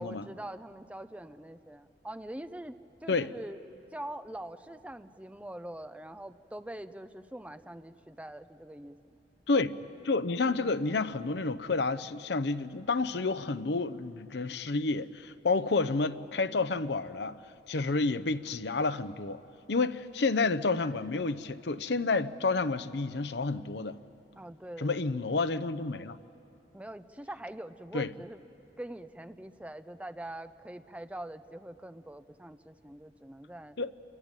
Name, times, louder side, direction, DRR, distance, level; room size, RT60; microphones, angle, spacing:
voice 1, 0.0-2.7 3.0-3.6 3.9-9.0 24.4-25.1 26.7-28.4 28.8-33.8, right 1 dB, 10° right, 0.6 m, -43 dB
voice 2, 10.0-17.4 17.7-19.4 19.7-24.0 24.8-26.2 27.9-28.1 33.8-33.9, left 3 dB, 70° left, 0.7 m, -30 dB
27.0 x 23.5 x 9.0 m
head